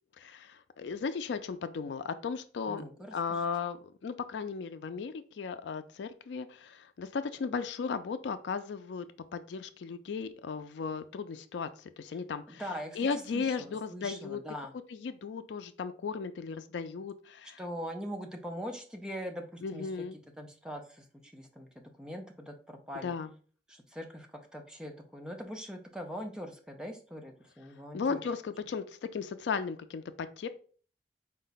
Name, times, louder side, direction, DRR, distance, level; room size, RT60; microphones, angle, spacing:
voice 1, 0.2-2.8 3.1-9.1 9.3-12.6 13.0-14.4 15.0-17.6 19.6-20.2 23.0-23.3 27.9-30.5, left 5 dB, 80° left, 11 dB, 0.4 m, -36 dB
voice 2, 2.7-3.4 12.5-14.7 17.6-20.1 20.4-23.1 23.7-28.2, equal, 5° right, 3 dB, 0.5 m, -42 dB
4.6 x 2.2 x 3.9 m, 0.42 s
head